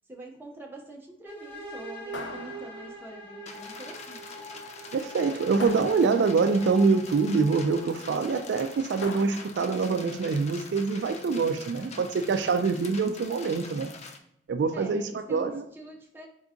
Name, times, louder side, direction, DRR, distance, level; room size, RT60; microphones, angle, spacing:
voice 1, 0.1-4.3 11.8-12.1 12.7-13.0 14.7-16.3, right 1 dB, 10° right, -1 dB, 0.8 m, -45 dB
sound 1, 1.2-8.9, right 1 dB, 10° left, 1.2 m, -44 dB
sound 2, 2.1-3.2 5.6-6.6 9.0-9.9, left 3 dB, 85° left, 0.6 m, -41 dB
sound 3, 3.5-14.2, left 4 dB, 40° left, 0.5 m, -45 dB
voice 2, 4.9-13.9 14.5-15.6, right 4 dB, 70° right, 7 dB, 0.3 m, -25 dB
3.9 x 3.5 x 3.6 m, 0.75 s
head